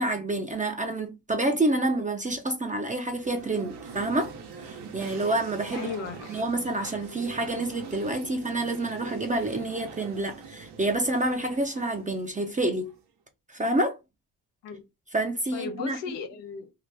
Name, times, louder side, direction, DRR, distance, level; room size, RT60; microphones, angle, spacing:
voice 1, 0.0-4.3 4.6-5.9 6.3-12.9 13.5-14.0 15.1-16.0, right 2 dB, 20° right, 0.6 m, -28 dB
sound 1, 3.1-13.1, right 5 dB, 65° right, 0.9 m, -43 dB
voice 2, 5.7-6.4 14.6-14.8 15.5-16.7, left 6 dB, 85° left, 0.9 m, -36 dB
2.8 x 2.5 x 3.3 m
cardioid pair, 80°, 42 cm